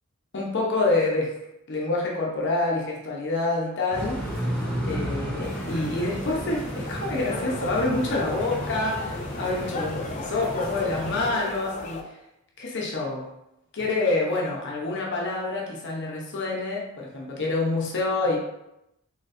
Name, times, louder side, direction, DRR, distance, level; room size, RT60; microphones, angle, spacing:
voice 1, 0.3-1.4 1.7-4.2 4.9-12.1 12.6-13.3 13.7-18.4, left 2 dB, 55° left, -2 dB, 0.8 m, -27 dB
sound 1, 3.9-11.3, equal, 5° left, 1.3 m, -33 dB
sound 2, 5.4-12.0, left 3 dB, 35° left, 0.3 m, -37 dB
4.1 x 2.9 x 2.6 m, 0.87 s
head